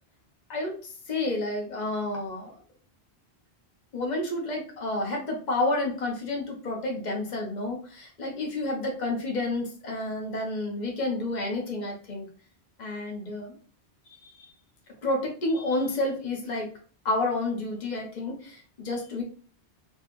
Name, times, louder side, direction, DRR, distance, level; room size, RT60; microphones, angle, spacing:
voice 1, 0.5-2.5 3.9-12.3 12.8-13.5 14.1-14.5 15.0-16.7 17.0-19.2, left 2 dB, 45° left, 0 dB, 1.1 m, -30 dB
4.3 x 2.4 x 3.1 m, 0.42 s
omnidirectional pair, 1.1 m